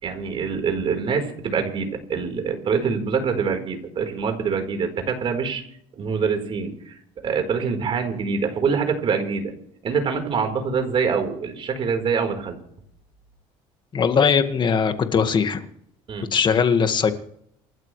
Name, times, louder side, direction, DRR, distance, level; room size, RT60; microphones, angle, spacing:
voice 1, 0.0-5.6 6.0-7.0 7.2-9.5 9.8-12.6 16.1-16.3, right 5 dB, 45° right, 5 dB, 4.5 m, -25 dB
voice 2, 13.9-15.6 16.3-17.1, left 6 dB, 35° left, 8 dB, 1.9 m, -20 dB
28.5 x 12.0 x 3.4 m, 0.71 s
supercardioid pair, 105°, 13 cm